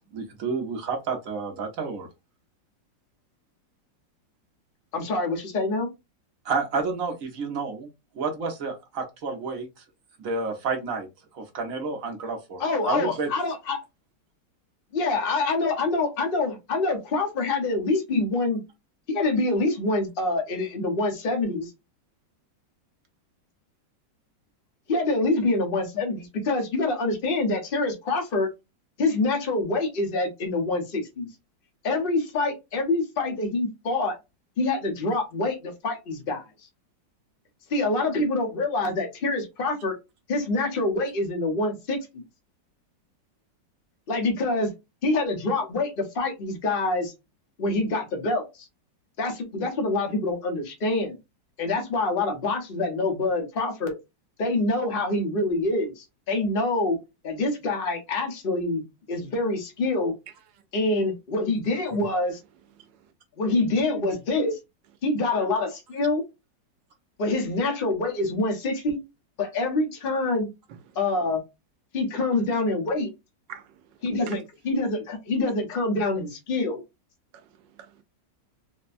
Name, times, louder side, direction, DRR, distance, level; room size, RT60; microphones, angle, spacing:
voice 1, 0.1-2.1 6.4-7.9 8.2-9.7 10.2-11.1 11.3-13.3, right 4 dB, 55° right, 1.1 m, -30 dB
voice 2, 4.9-5.9 12.6-13.8 14.9-18.6 19.1-21.7 24.9-28.5 29.0-31.3 31.8-34.2 34.6-36.5 37.7-40.0 40.3-42.2 44.1-44.7 45.0-47.1 47.6-48.7 49.2-51.2 51.6-53.9 54.4-57.0 57.2-58.8 59.1-60.2 60.7-62.4 63.4-64.6 65.0-66.2 67.2-69.0 69.4-70.5 70.9-71.4 71.9-73.1 74.0-76.8, left 2 dB, 40° left, 0.9 m, -26 dB
voice 3, 62.8-63.1 70.7-71.0 73.5-74.4 77.3-78.0, right 8 dB, 80° right, 1.3 m, -46 dB
4.3 x 2.2 x 2.5 m
omnidirectional pair, 2.0 m